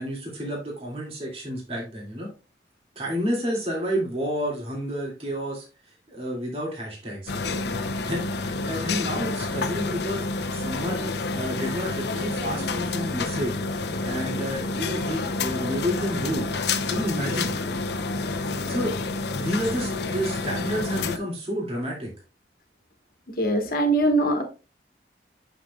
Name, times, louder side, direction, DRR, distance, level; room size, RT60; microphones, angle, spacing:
voice 1, 0.0-2.3 3.0-5.6 6.1-7.5 8.0-13.6 14.0-16.5 16.9-17.5 18.7-22.1, equal, 35° right, 2.5 m, -30 dB
sound 1, 7.3-21.2, left 3 dB, 70° left, 0.7 m, -29 dB
voice 2, 23.4-24.4, right 1 dB, 55° left, 1.4 m, -21 dB
8.6 x 6.1 x 2.3 m
head